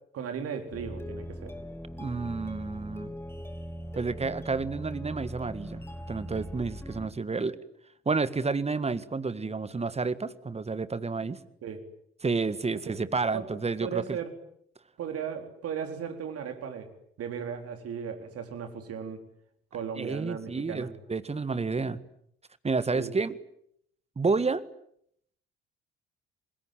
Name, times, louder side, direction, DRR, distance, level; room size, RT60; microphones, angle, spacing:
voice 1, 0.1-1.5 11.6-11.8 12.7-13.0 13.3-13.5 13.8-14.3 15.0-16.9 17.2-19.2 19.7-20.9 22.9-23.1, right 7 dB, 50° right, 7 dB, 4.1 m, -36 dB
sound 1, 0.7-7.1, equal, 10° left, 3.7 m, -40 dB
voice 2, 2.0-3.1 3.9-7.6 8.1-11.4 12.2-14.2 20.0-22.0 22.6-23.4 24.2-24.6, right 4 dB, 20° right, 15 dB, 1.8 m, -30 dB
27.0 x 21.0 x 9.2 m, 0.71 s
figure-of-eight pair, 55°, 30 cm